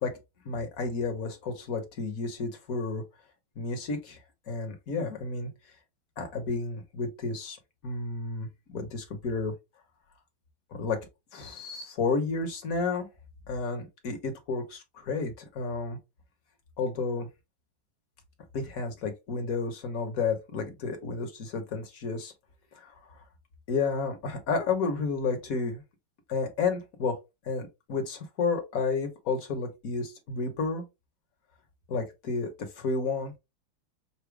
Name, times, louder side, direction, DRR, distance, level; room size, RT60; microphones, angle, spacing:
voice 1, 0.4-3.0 3.6-4.2 4.5-5.5 6.2-7.6 7.8-9.5 10.7-11.0 11.3-13.1 13.5-16.0 16.8-17.3 18.5-22.3 22.7-23.1 23.7-25.8 26.3-27.2 27.4-30.8 31.9-32.5 32.8-33.4, left 4 dB, 50° left, 1.3 m, -31 dB
6.0 x 2.1 x 3.3 m
omnidirectional pair, 2.3 m